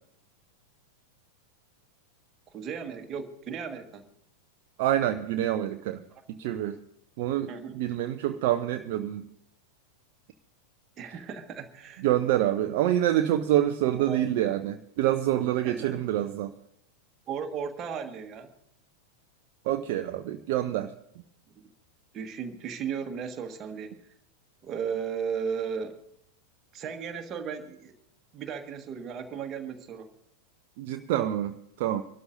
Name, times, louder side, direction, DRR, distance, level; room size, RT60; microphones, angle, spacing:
voice 1, 2.5-4.1 6.1-6.2 7.5-7.8 11.0-12.0 13.8-14.3 15.6-16.0 17.3-18.5 22.1-23.9 24.6-25.9 26.7-27.9 28.3-30.1, right 6 dB, 30° right, 5 dB, 1.5 m, -35 dB
voice 2, 4.8-6.0 6.3-6.8 7.2-9.3 12.0-16.5 19.7-20.9 30.8-32.0, right 12 dB, 50° right, 7 dB, 0.6 m, -27 dB
25.5 x 12.5 x 2.7 m, 0.73 s
figure-of-eight pair, 90°, 0 cm